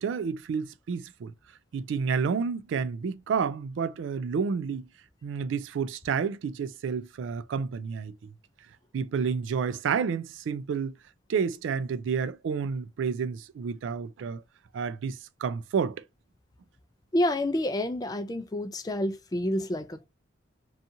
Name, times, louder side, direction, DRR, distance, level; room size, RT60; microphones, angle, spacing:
voice 1, 0.0-1.3 1.7-4.9 5.2-8.3 8.9-10.9 11.3-14.4 14.7-16.0, right 6 dB, 80° right, 0.3 m, -30 dB
voice 2, 17.1-20.1, left 1 dB, 20° left, 0.3 m, -28 dB
2.8 x 2.4 x 2.5 m
head